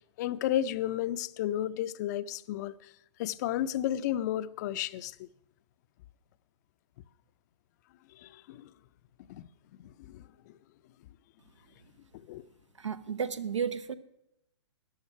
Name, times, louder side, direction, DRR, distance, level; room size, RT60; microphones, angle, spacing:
voice 1, 0.2-2.7 3.2-5.1 8.2-8.6 9.3-9.5 9.8-10.2 12.3-12.4, left 12 dB, 35° left, 0.5 m, -32 dB
voice 2, 12.8-13.9, right 7 dB, 80° right, 1.0 m, -33 dB
14.0 x 10.0 x 5.6 m
hypercardioid pair, 130°, 15 cm